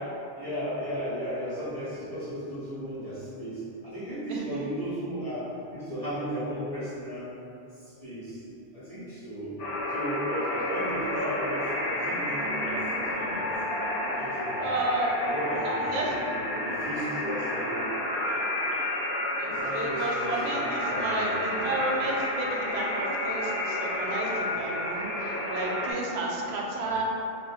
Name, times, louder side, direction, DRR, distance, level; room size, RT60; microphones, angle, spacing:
voice 1, 0.0-7.3 7.7-8.4 8.7-9.6 9.9-13.5 14.1-14.8 15.1-17.9 19.5-21.9 26.8-26.9, equal, 35° right, -14 dB, 1.3 m, -35 dB
voice 2, 4.3-4.6 14.6-15.2 15.6-16.1 19.4-27.0, right 2 dB, 90° right, -2 dB, 0.8 m, -32 dB
sound 1, 9.6-25.9, left 1 dB, 70° left, 0.9 m, -30 dB
4.9 x 2.4 x 2.3 m, 2.7 s
omnidirectional pair, 1.0 m